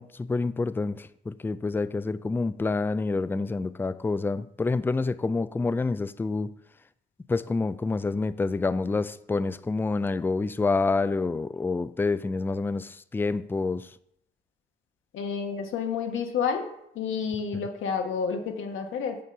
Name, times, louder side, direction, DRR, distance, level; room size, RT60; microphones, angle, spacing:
voice 1, 0.0-6.5 7.3-13.9, left 3 dB, 10° left, 0.3 m, -28 dB
voice 2, 15.1-16.7 16.9-19.2, left 6 dB, 80° left, 1.3 m, -29 dB
8.4 x 3.8 x 6.7 m
cardioid pair, 90°, 20 cm